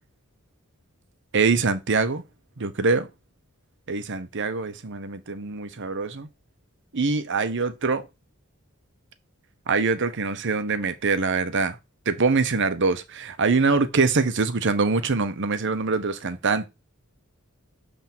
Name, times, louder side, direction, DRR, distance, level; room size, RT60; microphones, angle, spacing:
voice 1, 1.3-2.2 2.6-3.1 3.9-6.3 6.9-8.0 9.7-11.8 12.1-16.7, right 4 dB, 60° right, 0.9 m, -24 dB
7.2 x 3.5 x 6.0 m
head